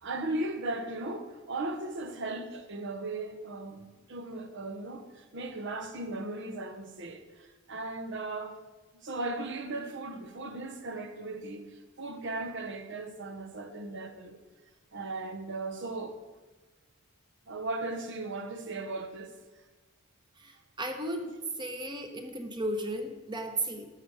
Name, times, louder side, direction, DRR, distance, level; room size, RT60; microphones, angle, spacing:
voice 1, 0.0-8.6 9.0-14.4 14.9-16.2 17.5-19.3, right 2 dB, 55° right, 1.0 m, -37 dB
voice 2, 20.4-21.3 21.6-23.9, right 1 dB, 20° right, 1.0 m, -35 dB
11.5 x 7.4 x 4.9 m
head